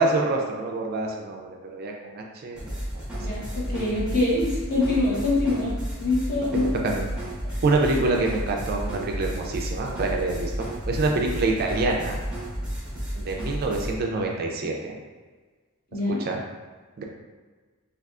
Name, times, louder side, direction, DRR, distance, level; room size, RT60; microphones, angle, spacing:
voice 1, 0.0-3.0 6.5-7.1 7.6-12.2 13.2-15.0 16.2-16.4 17.0-17.1, right 2 dB, 45° right, 1 dB, 0.3 m, -26 dB
sound 1, 2.6-13.9, equal, 5° right, 0.7 m, -32 dB
voice 2, 3.2-6.7 15.9-16.2, left 2 dB, 40° left, -8 dB, 1.0 m, -25 dB
3.4 x 2.4 x 2.4 m, 1.4 s
head